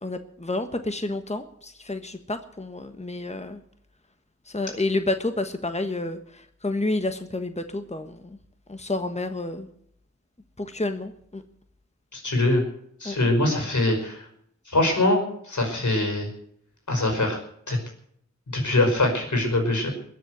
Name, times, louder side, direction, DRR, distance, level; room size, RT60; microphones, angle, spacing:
voice 1, 0.0-3.6 4.5-8.4 8.7-9.7 10.6-11.4 13.0-13.3, left 2 dB, 25° left, 7 dB, 1.3 m, -30 dB
voice 2, 12.1-12.6 13.0-14.3 14.7-16.3 16.9-17.4 17.7-17.8 18.5-19.9, left 2 dB, 80° left, 3 dB, 5.3 m, -23 dB
21.5 x 7.7 x 8.0 m, 0.69 s
wide cardioid pair, 50°, 29 cm